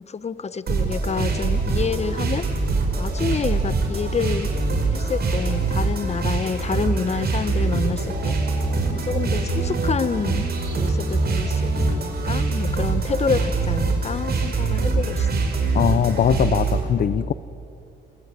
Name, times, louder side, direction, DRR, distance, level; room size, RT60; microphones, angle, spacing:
voice 1, 0.0-2.5 3.0-4.5 4.9-8.4 8.9-15.3, left 5 dB, 35° left, 16 dB, 1.0 m, -28 dB
sound 1, 0.7-16.8, right 3 dB, 50° right, 5.1 m, -23 dB
voice 2, 15.7-17.3, left 9 dB, 50° left, 16 dB, 0.7 m, -21 dB
24.5 x 20.5 x 9.8 m, 2.8 s
cardioid pair, 90°, 20 cm